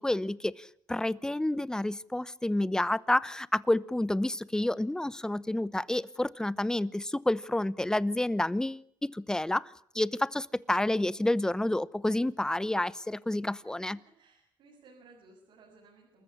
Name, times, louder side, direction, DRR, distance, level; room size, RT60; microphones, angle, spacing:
voice 1, 0.0-14.0, left 1 dB, 10° left, 19 dB, 0.9 m, -29 dB
voice 2, 13.6-16.2, right 3 dB, 80° right, 0 dB, 7.6 m, -58 dB
28.0 x 14.5 x 9.9 m, 0.63 s
cardioid pair, 105°, 9 cm